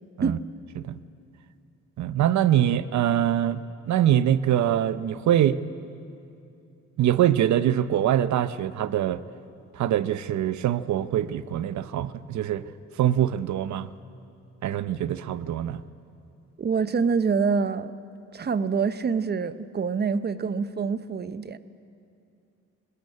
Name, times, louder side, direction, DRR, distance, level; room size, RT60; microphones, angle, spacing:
voice 1, 2.0-5.6 7.0-9.2 9.7-12.6 13.0-13.9 14.6-15.8, right 11 dB, 70° right, 14 dB, 0.8 m, -24 dB
voice 2, 16.6-17.9 18.3-21.6, right 5 dB, 35° right, 13 dB, 0.9 m, -26 dB
21.0 x 19.5 x 8.6 m, 2.6 s
cardioid pair, 90°, 30 cm